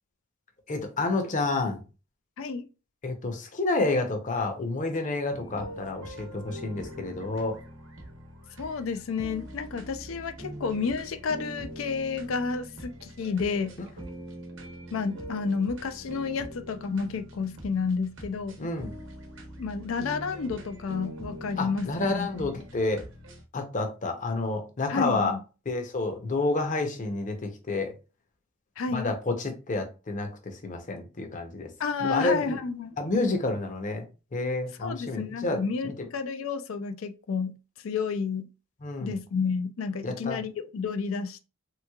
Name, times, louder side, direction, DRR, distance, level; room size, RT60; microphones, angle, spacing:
voice 1, 0.7-1.8 3.0-7.6 18.6-18.9 21.6-23.0 23.5-25.4 25.7-27.9 28.9-31.7 32.0-32.6 33.0-34.1 34.3-35.9 38.8-39.2 40.0-40.4, left 2 dB, 40° left, 0.7 m, -29 dB
voice 2, 2.4-2.7 8.6-13.7 14.9-18.6 19.6-22.3 24.9-25.4 28.8-29.1 31.8-33.0 34.8-37.6 37.8-38.5 39.0-41.4, left 5 dB, 75° left, 0.4 m, -31 dB
sound 1, 5.3-23.4, right 1 dB, 65° right, 0.9 m, -43 dB
3.4 x 3.1 x 2.3 m
head